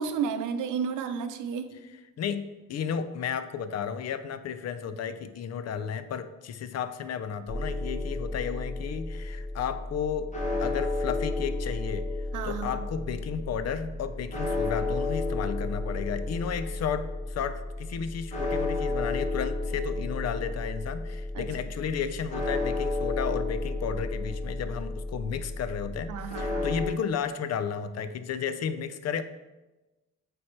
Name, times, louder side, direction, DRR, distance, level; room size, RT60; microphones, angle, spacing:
voice 1, 0.0-1.8 12.3-12.9 21.3-21.5 26.1-26.7, right 6 dB, 80° right, 9 dB, 0.7 m, -32 dB
voice 2, 2.2-10.3 10.6-12.1 12.4-29.2, left 7 dB, 55° left, 11 dB, 0.6 m, -33 dB
sound 1, 7.5-26.9, left 2 dB, 25° left, 1.3 m, -32 dB
8.5 x 3.5 x 4.4 m, 1.1 s
cardioid pair, 90°, 30 cm